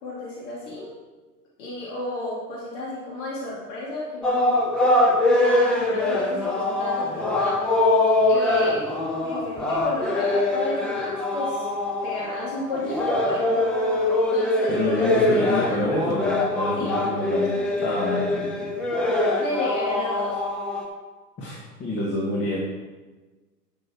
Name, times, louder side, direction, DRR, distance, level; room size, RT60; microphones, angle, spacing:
voice 1, 0.0-1.0 1.6-4.6 5.2-7.6 8.3-8.9 9.2-11.7 12.0-13.6 14.3-15.9 16.7-17.0 17.3-18.3 19.4-20.4, left 1 dB, 50° left, -5 dB, 3.0 m, -33 dB
sound 1, 4.2-20.8, left 2 dB, ahead, 0.4 m, -23 dB
voice 2, 14.7-17.5 17.8-18.5 21.4-22.6, left 1 dB, 25° left, -4 dB, 2.2 m, -27 dB
11.5 x 6.7 x 4.7 m, 1.2 s
figure-of-eight pair, 100°, 49 cm